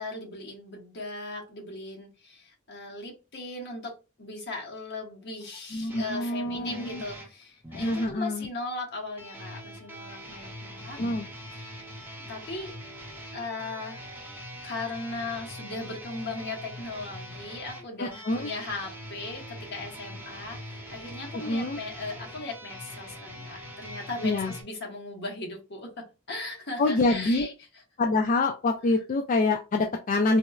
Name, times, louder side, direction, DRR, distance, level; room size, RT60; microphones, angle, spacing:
voice 1, 0.0-3.9 4.2-11.0 12.2-12.7 13.3-14.0 14.6-25.9 26.3-27.5, left 2 dB, 60° left, 0 dB, 1.0 m, -38 dB
voice 2, 5.7-7.0 7.7-8.5 11.0-11.3 18.0-18.5 21.3-21.8 24.2-24.5 26.8-27.5 28.0-30.4, left 2 dB, 40° left, 4 dB, 0.3 m, -26 dB
sound 1, 5.9-8.1 9.2-24.6, equal, 10° right, 0.7 m, -43 dB
4.1 x 2.0 x 2.3 m, 0.30 s
head